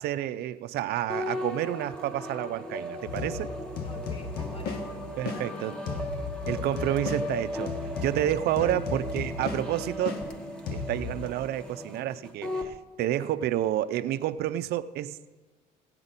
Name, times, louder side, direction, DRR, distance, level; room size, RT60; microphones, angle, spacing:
voice 1, 0.0-3.5 5.2-5.7 6.5-10.2 10.7-15.3, right 12 dB, 75° right, 12 dB, 0.5 m, -30 dB
Melancholia Tape Loop, 1.1-12.7, left 1 dB, 5° left, 1.2 m, -37 dB
sound 1, 3.1-11.3, left 5 dB, 70° left, 0.9 m, -36 dB
voice 2, 3.8-6.0 8.5-9.4, left 3 dB, 35° left, 7 dB, 1.3 m, -47 dB
15.0 x 8.8 x 4.1 m, 1.3 s
cardioid pair, 110°, 17 cm